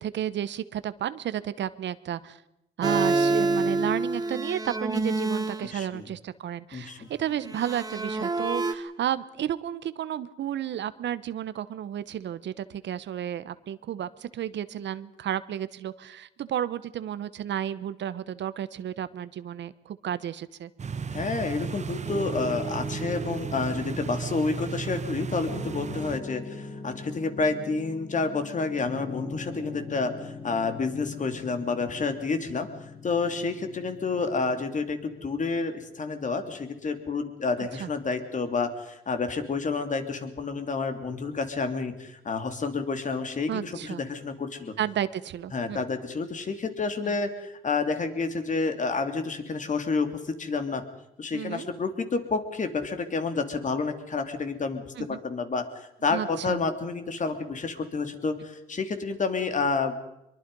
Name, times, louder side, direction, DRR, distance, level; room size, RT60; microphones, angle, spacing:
voice 1, 0.0-2.4 2.8-20.7 37.8-37.9 43.5-44.0 44.8-45.8 51.3-51.7 55.0-55.2 56.1-56.6, right 10 dB, 65° right, 14 dB, 1.0 m, -32 dB
sound 1, 2.8-5.7 7.4-8.7, right 3 dB, 20° right, 2.2 m, -27 dB
voice 2, 5.7-6.1 6.7-7.1 21.1-32.7 33.0-44.7 45.5-50.8 51.2-59.9, left 4 dB, 40° left, 7 dB, 2.9 m, -29 dB
sound 2, 20.8-26.2, right 6 dB, 35° right, 1.1 m, -35 dB
Piano, 22.0-35.4, left 2 dB, 65° left, 5.3 m, -41 dB
24.0 x 23.0 x 5.5 m, 0.86 s
cardioid pair, 90°, 20 cm